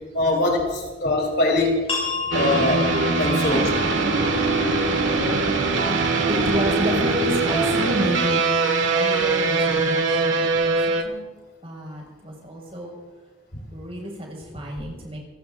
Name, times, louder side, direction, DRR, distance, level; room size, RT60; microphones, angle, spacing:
voice 1, 0.1-1.8 2.3-2.9 3.2-3.7, left 2 dB, 55° left, 1 dB, 3.6 m, -22 dB
sound 1, 1.9-7.3, left 5 dB, 30° left, 6.8 m, -33 dB
sound 2, 2.3-11.0, right 3 dB, 80° right, 1.7 m, -22 dB
voice 2, 6.3-10.8 11.0-11.3 11.6-13.0 13.7-15.2, equal, 30° right, -1 dB, 5.6 m, -31 dB
27.5 x 17.5 x 2.6 m, 1.3 s
head